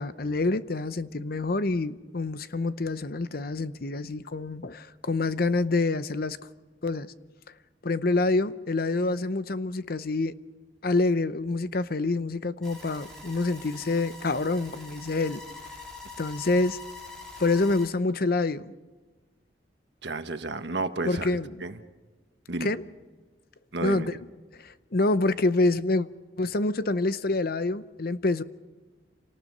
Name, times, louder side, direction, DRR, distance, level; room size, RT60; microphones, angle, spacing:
voice 1, 0.0-6.4 6.8-7.1 7.8-10.4 10.8-15.4 16.2-16.8 17.4-18.7 21.1-21.5 22.6-22.8 23.8-24.2 24.6-26.1 26.4-28.4, left 2 dB, 55° left, 0.8 m, -27 dB
sound 1, 12.6-17.9, left 3 dB, 5° left, 4.2 m, -44 dB
voice 2, 20.0-21.3 21.6-21.8 22.5-22.7 23.7-24.1, right 2 dB, 75° right, 1.4 m, -31 dB
27.0 x 19.0 x 5.5 m
head